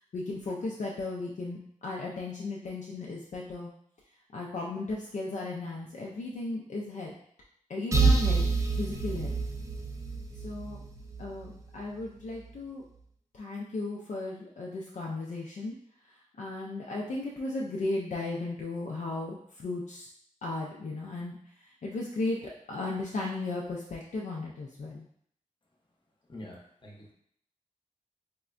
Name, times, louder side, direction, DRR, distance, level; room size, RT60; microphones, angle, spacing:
voice 1, 0.1-3.7 4.3-7.1 7.7-8.4 8.7-9.3 10.3-10.8 11.2-12.8 13.3-15.8 16.1-20.1 20.4-25.1, left 2 dB, 65° left, -3 dB, 0.4 m, -35 dB
sound 1, 7.9-11.6, right 4 dB, 25° right, 0.4 m, -27 dB
voice 2, 26.3-27.1, left 1 dB, 35° left, -3 dB, 0.8 m, -46 dB
3.5 x 2.1 x 2.4 m, 0.66 s
wide cardioid pair, 85°, 13 cm